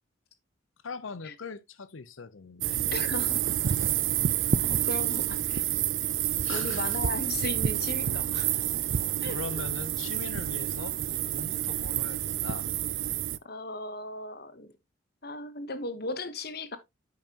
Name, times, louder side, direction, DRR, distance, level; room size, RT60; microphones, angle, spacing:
voice 1, 0.8-2.8 6.4-7.0 8.9-11.0 11.3-12.7, left 4 dB, 75° left, 0.7 m, -41 dB
sound 1, 2.6-13.4, right 11 dB, 70° right, 0.4 m, -29 dB
voice 2, 2.9-3.4 4.7-5.7 6.5-8.5 9.2-9.4 13.4-14.7 15.2-16.8, left 2 dB, 50° left, 1.0 m, -36 dB
8.9 x 5.7 x 2.9 m
head